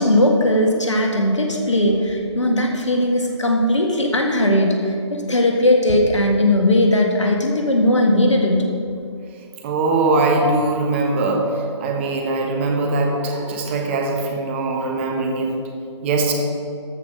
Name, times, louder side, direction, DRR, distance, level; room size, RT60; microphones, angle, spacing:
voice 1, 0.0-8.7, left 1 dB, 75° left, 2 dB, 1.8 m, -18 dB
voice 2, 9.6-15.5 16.0-16.3, right 2 dB, 25° right, 1 dB, 1.2 m, -21 dB
13.5 x 6.3 x 5.0 m, 2.4 s
figure-of-eight pair, 145°, 15 cm